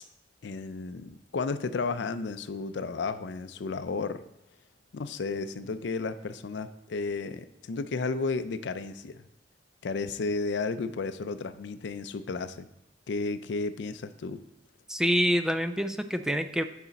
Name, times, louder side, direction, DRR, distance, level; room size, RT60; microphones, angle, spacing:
voice 1, 0.4-4.2 4.9-9.3 9.8-12.7 13.1-14.4, left 4 dB, 75° left, 12 dB, 0.4 m, -33 dB
voice 2, 14.9-16.6, equal, 5° right, 9 dB, 0.3 m, -26 dB
9.4 x 4.2 x 4.0 m, 0.89 s
head